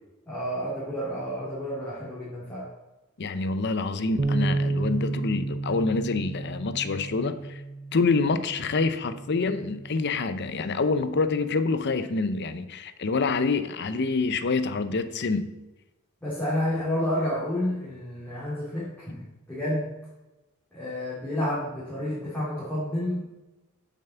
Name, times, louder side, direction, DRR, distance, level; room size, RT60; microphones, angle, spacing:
voice 1, 0.3-2.7 16.2-19.2 19.5-19.9 20.7-23.3, left 1 dB, 5° left, 2.4 m, -30 dB
voice 2, 3.2-7.6 7.9-15.5, left 4 dB, 50° left, 0.6 m, -26 dB
Bass guitar, 4.2-10.4, right 2 dB, 30° right, 0.4 m, -32 dB
7.2 x 5.6 x 6.9 m
head